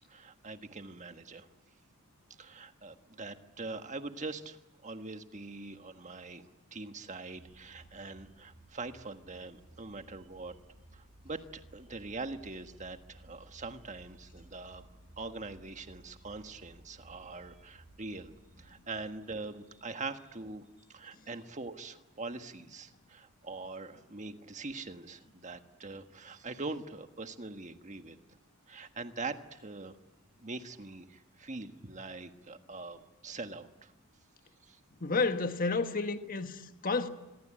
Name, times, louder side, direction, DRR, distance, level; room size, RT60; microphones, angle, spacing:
voice 1, 0.1-1.5 2.4-10.5 10.9-14.9 15.2-28.2 28.7-30.0 30.4-33.9 34.6-34.8, right 3 dB, 35° right, 1.5 m, -43 dB
sound 1, 7.3-20.2, right 1 dB, 85° right, 6.6 m, -58 dB
voice 2, 35.0-37.1, left 3 dB, 40° left, 1.5 m, -31 dB
26.5 x 23.0 x 8.9 m
head